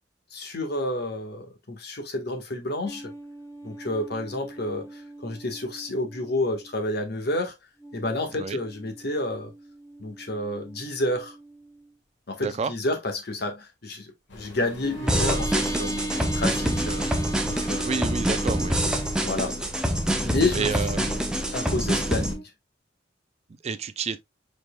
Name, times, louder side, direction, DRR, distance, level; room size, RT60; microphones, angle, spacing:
voice 1, 0.3-3.1 3.6-7.6 7.9-9.5 10.0-11.4 12.3-17.1 17.4-17.9 19.2-19.6 20.2-20.7 21.0-21.1 21.5-22.5, left 2 dB, 60° left, 1.4 m, -30 dB
sound 1, 2.9-6.8 7.8-11.9 14.8-19.6 20.9-22.4, right 2 dB, 15° left, 1.0 m, -37 dB
voice 2, 12.4-12.7 17.8-18.8 20.5-21.0 23.5-24.2, right 5 dB, 35° right, 0.4 m, -29 dB
sound 2, 14.3-22.4, left 2 dB, 75° left, 1.6 m, -44 dB
sound 3, 15.1-22.3, equal, 5° right, 0.8 m, -26 dB
5.1 x 4.5 x 2.2 m
head